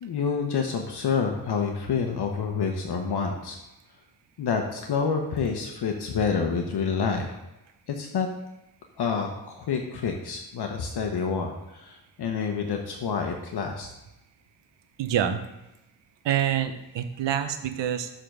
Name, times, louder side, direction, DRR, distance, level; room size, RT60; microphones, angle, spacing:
voice 1, 0.0-3.6 4.4-7.4 7.9-8.3 9.0-13.9, left 5 dB, 65° left, 3 dB, 0.9 m, -28 dB
voice 2, 15.0-15.4 16.2-18.1, right 10 dB, 85° right, 9 dB, 0.8 m, -26 dB
6.8 x 3.8 x 6.3 m, 0.95 s
cardioid pair, 80°, 42 cm